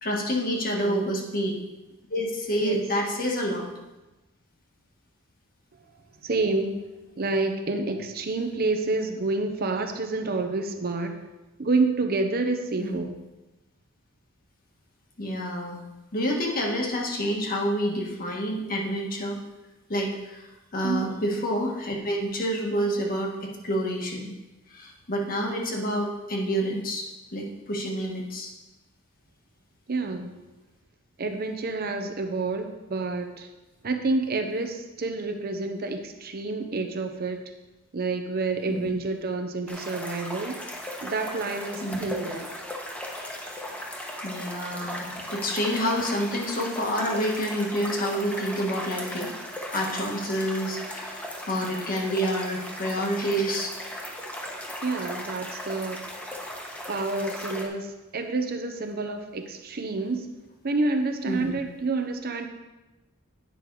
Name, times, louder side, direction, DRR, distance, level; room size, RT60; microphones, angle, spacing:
voice 1, 0.0-1.6 2.1-3.7 12.8-13.0 15.2-15.8 16.1-19.4 19.9-20.4 20.7-24.3 24.7-28.5 38.7-38.9 41.8-42.0 44.2-49.4 49.7-53.7 61.3-61.5, equal, 45° left, 0 dB, 1.5 m, -28 dB
voice 2, 6.2-6.8 7.2-11.2 11.6-13.1 20.8-21.1 29.9-30.4 31.2-33.5 33.8-37.4 37.9-40.6 41.0-42.5 54.8-56.0 56.9-60.3 60.6-62.5, right 3 dB, 50° right, 5 dB, 0.7 m, -28 dB
sound 1, 39.7-57.7, equal, 5° left, 1.0 m, -37 dB
9.3 x 5.3 x 4.6 m, 1.1 s
head